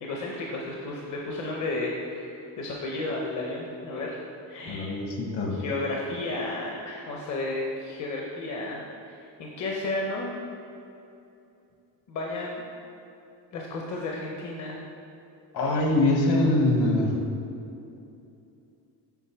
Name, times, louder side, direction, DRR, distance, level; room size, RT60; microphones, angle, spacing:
voice 1, 0.0-4.2 4.4-5.0 5.5-10.3 12.1-12.6 13.5-14.8, left 2 dB, 45° left, -1 dB, 0.7 m, -33 dB
voice 2, 4.7-5.6 15.5-17.2, left 2 dB, 60° left, 1 dB, 1.3 m, -23 dB
8.1 x 4.3 x 4.5 m, 2.7 s
cardioid pair, 165°, 43 cm